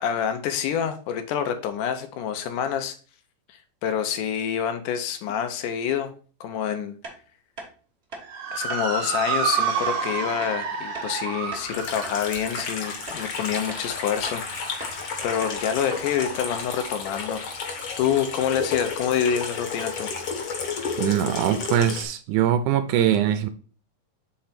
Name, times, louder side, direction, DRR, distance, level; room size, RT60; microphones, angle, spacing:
voice 1, 0.0-3.0 3.8-6.1 6.4-6.9 8.5-17.4 18.0-20.1, left 8 dB, 80° left, 8 dB, 2.2 m, -27 dB
sound 1, 7.0-7.2 7.6-7.7 8.1-8.3 8.7-8.8 9.3-9.4 9.9-10.0 10.4-10.6 10.9-11.1 11.5-12.2 12.6-12.7 13.1-13.2 13.7-13.9 14.3-14.4 14.8-15.0 15.4-15.6 15.9-16.0 16.2-16.4, right 2 dB, 45° right, 0.8 m, -39 dB
Motor vehicle (road) / Siren, 8.2-16.8, right 5 dB, 60° right, 1.6 m, -31 dB
Water tap faucet / Sink (filling or washing), 11.7-22.0, left 5 dB, 55° left, 1.5 m, -32 dB
voice 2, 21.0-23.5, right 10 dB, 80° right, 10 dB, 2.0 m, -22 dB
5.7 x 3.8 x 5.7 m, 0.39 s
omnidirectional pair, 3.8 m